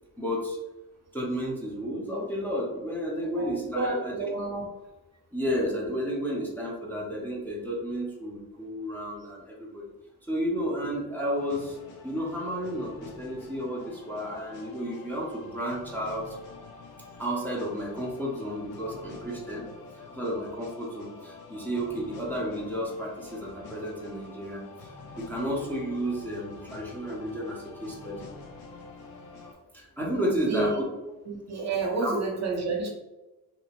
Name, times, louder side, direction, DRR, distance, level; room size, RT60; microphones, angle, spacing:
voice 1, 0.2-0.6 1.1-4.3 5.3-9.8 10.3-11.8 12.0-16.4 17.2-19.6 20.1-28.2 29.7-30.8 32.0-32.2, equal, 5° left, -4 dB, 0.6 m, -32 dB
voice 2, 3.7-4.7 30.2-30.8 31.2-32.9, right 3 dB, 45° right, 0 dB, 0.6 m, -30 dB
sound 1, 11.3-29.5, left 3 dB, 80° left, 0.6 m, -47 dB
2.8 x 2.0 x 2.9 m, 1.1 s
cardioid pair, 100°, 37 cm